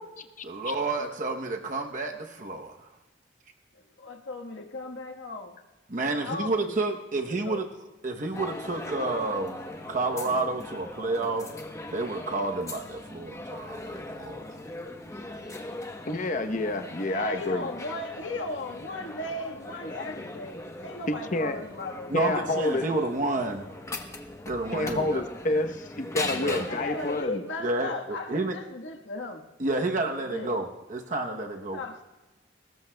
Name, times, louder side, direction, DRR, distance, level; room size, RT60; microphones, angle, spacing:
voice 1, 0.4-2.9 5.9-7.7 8.0-9.6 9.9-11.5 11.9-14.4 22.1-23.7 24.5-25.2 26.3-26.7 27.6-28.5 29.6-31.8, right 2 dB, 45° right, 3 dB, 0.9 m, -30 dB
voice 2, 4.0-5.6 6.1-6.9 7.3-7.6 17.0-22.5 26.6-29.4 30.3-30.5 31.7-32.0, left 2 dB, 85° left, 3 dB, 1.4 m, -36 dB
sound 1, 8.3-27.2, left 2 dB, 15° left, 0.9 m, -40 dB
voice 3, 16.1-17.7 21.1-21.6 22.1-22.9 24.7-27.4, left 2 dB, 45° left, 8 dB, 0.9 m, -28 dB
22.5 x 19.0 x 2.3 m, 1.1 s
head